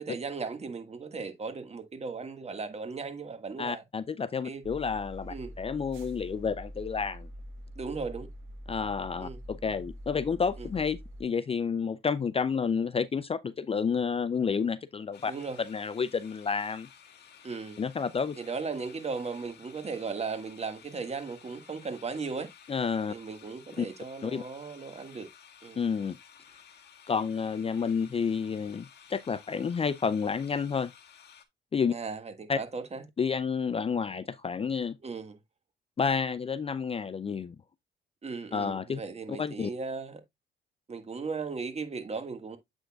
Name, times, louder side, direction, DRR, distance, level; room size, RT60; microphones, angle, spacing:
voice 1, 0.0-3.8 4.4-4.6 5.3-5.5 7.7-8.3 9.2-9.4 10.6-10.7 15.2-15.6 17.4-17.8 18.4-22.5 23.1-25.3 25.6-25.8 31.9-33.0 35.0-35.4 38.2-40.2 40.9-42.6, right 4 dB, 30° right, 1.6 m, -37 dB
voice 2, 3.6-7.3 8.7-15.3 15.6-16.9 17.8-18.4 22.7-23.1 23.8-23.9 24.2-24.4 25.8-26.2 27.1-30.9 31.7-31.9 32.5-32.6 33.2-35.0 36.0-37.6 38.5-39.0 39.3-39.7, left 6 dB, 30° left, 0.5 m, -30 dB
sound 1, 4.6-11.2, equal, 90° right, 1.4 m, -45 dB
sound 2, 15.1-31.5, left 8 dB, 55° left, 1.5 m, -55 dB
7.8 x 6.3 x 2.3 m
cardioid pair, 90°, 20 cm